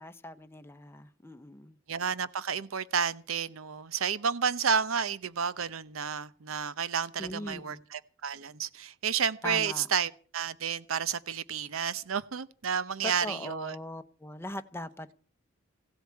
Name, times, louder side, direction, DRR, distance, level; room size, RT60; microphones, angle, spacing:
voice 1, 0.0-1.8 7.2-7.8 9.4-9.9 13.0-15.1, left 1 dB, 10° left, 0.7 m, -40 dB
voice 2, 1.9-13.8, right 6 dB, 85° right, 0.7 m, -31 dB
16.0 x 8.0 x 8.4 m
head